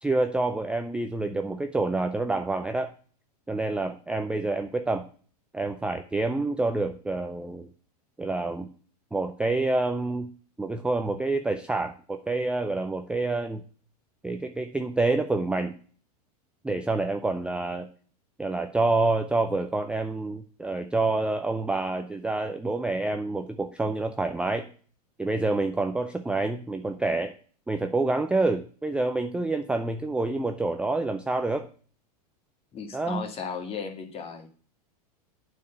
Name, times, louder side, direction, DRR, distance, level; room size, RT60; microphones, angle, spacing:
voice 1, 0.0-2.9 3.5-5.1 5.5-7.7 8.2-8.7 9.1-10.3 10.6-13.6 14.2-15.7 16.6-17.9 18.4-24.7 25.2-27.3 27.7-31.7 32.9-33.2, right 2 dB, 5° right, 0.5 m, -27 dB
voice 2, 32.7-34.5, left 6 dB, 30° left, 2.0 m, -35 dB
8.3 x 4.7 x 6.7 m
hypercardioid pair, 115°, 20 cm